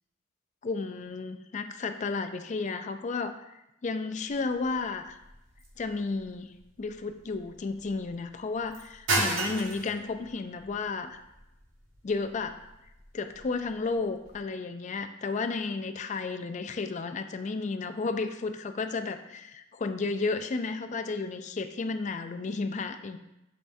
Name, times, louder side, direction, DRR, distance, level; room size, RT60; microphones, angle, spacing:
voice 1, 0.6-5.2 5.8-6.5 6.8-11.2 12.0-12.6 13.1-23.2, left 4 dB, 40° left, 8 dB, 0.4 m, -33 dB
sound 1, 4.3-14.4, right 2 dB, 90° right, 1.5 m, -37 dB
7.3 x 5.4 x 2.7 m, 0.90 s
head